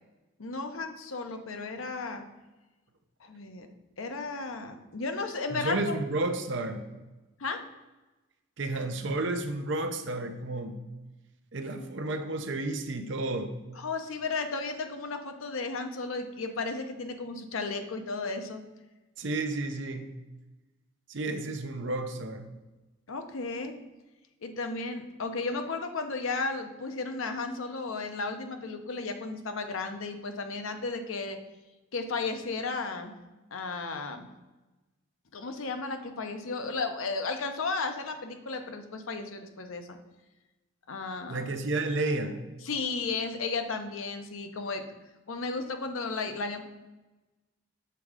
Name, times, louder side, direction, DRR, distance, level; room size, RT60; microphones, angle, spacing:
voice 1, 0.4-2.2 3.2-3.7 4.0-6.0 7.4-7.6 13.8-18.6 23.1-23.7 24.4-31.4 31.9-33.1 33.5-34.3 35.3-40.0 40.9-41.4 42.6-44.8 45.3-46.7, left 3 dB, 75° left, 6 dB, 0.7 m, -34 dB
voice 2, 5.5-6.8 8.6-10.8 11.5-13.5 19.2-20.1 21.1-22.5 41.3-42.4, right 2 dB, 60° right, 6 dB, 0.6 m, -31 dB
6.8 x 3.6 x 4.9 m, 1.1 s
head